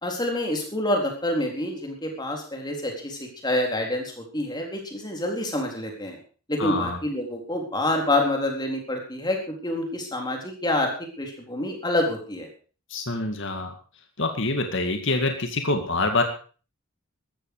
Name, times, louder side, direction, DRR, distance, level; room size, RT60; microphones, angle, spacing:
voice 1, 0.0-6.2 6.5-10.9 11.2-12.5, left 1 dB, 20° left, 2 dB, 3.9 m, -27 dB
voice 2, 6.6-7.0 12.9-13.7 14.2-16.2, left 2 dB, 55° left, 5 dB, 2.2 m, -25 dB
14.5 x 13.5 x 4.9 m, 0.39 s
head